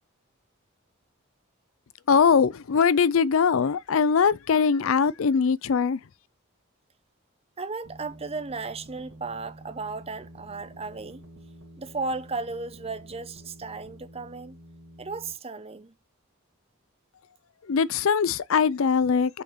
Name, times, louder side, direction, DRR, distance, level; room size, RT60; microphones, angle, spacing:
voice 1, 2.1-6.0 17.7-19.4, left 6 dB, 70° left, 0.5 m, -21 dB
voice 2, 7.6-11.2 11.8-14.6 15.0-15.9, right 3 dB, 30° right, 0.8 m, -35 dB
sound 1, 7.8-15.3, right 1 dB, 70° right, 2.0 m, -49 dB
5.9 x 4.4 x 5.7 m
head